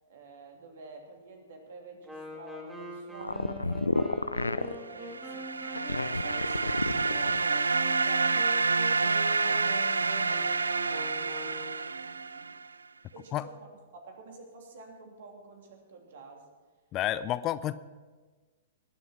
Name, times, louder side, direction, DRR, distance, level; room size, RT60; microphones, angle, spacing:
voice 1, 0.1-4.3 4.7-5.5 6.1-9.8 10.1-12.6 13.1-13.7 13.9-16.5 17.1-17.3, right 3 dB, 60° right, 3 dB, 2.9 m, -49 dB
Wind instrument woodwind instrument, 2.0-11.9, equal, 10° right, 2.5 m, -44 dB
sound 1, 3.2-4.8 5.7-7.5, left 2 dB, 90° left, 0.5 m, -30 dB
sound 2, 4.9-12.7, right 4 dB, 80° right, 0.3 m, -28 dB
voice 2, 16.9-17.7, left 13 dB, 30° left, 16 dB, 0.5 m, -30 dB
20.0 x 8.0 x 6.0 m, 1.3 s
figure-of-eight pair, 105°, 0 cm